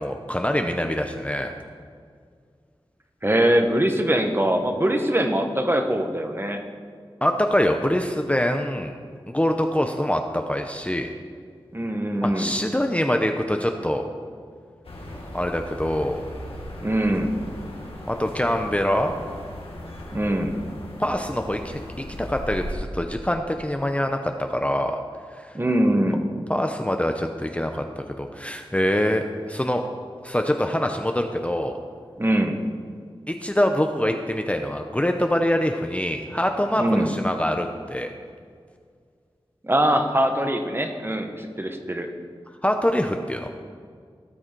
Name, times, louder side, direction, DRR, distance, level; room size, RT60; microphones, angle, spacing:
voice 1, 0.0-1.5 7.2-8.9 9.3-11.1 12.2-14.0 15.3-16.2 18.1-19.1 21.0-25.0 25.4-25.5 26.5-29.8 30.2-31.8 33.3-38.1 42.6-43.5, left 1 dB, 15° left, 5 dB, 0.7 m, -24 dB
voice 2, 3.2-6.7 11.7-12.5 16.8-17.3 20.1-20.6 25.5-26.2 32.2-32.6 36.8-37.1 39.6-42.1, right 1 dB, 25° right, 5 dB, 1.2 m, -22 dB
sound 1, 14.8-22.7, left 1 dB, 85° left, 1.8 m, -38 dB
17.0 x 6.3 x 4.6 m, 2.1 s
wide cardioid pair, 50°, 10 cm